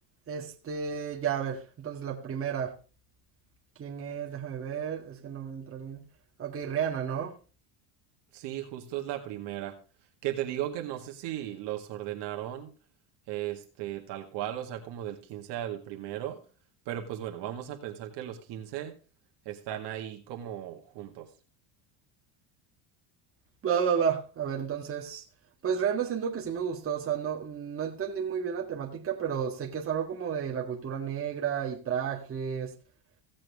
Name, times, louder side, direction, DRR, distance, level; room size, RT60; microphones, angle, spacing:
voice 1, 0.3-2.7 3.8-6.0 6.4-7.3 23.6-25.2 25.6-32.8, right 7 dB, 30° right, 1.8 m, -32 dB
voice 2, 8.3-9.8 10.2-12.7 13.3-16.4 16.9-19.0 19.5-21.3, right 12 dB, 60° right, 2.0 m, -36 dB
16.0 x 7.6 x 3.5 m
cardioid pair, 140°, 46 cm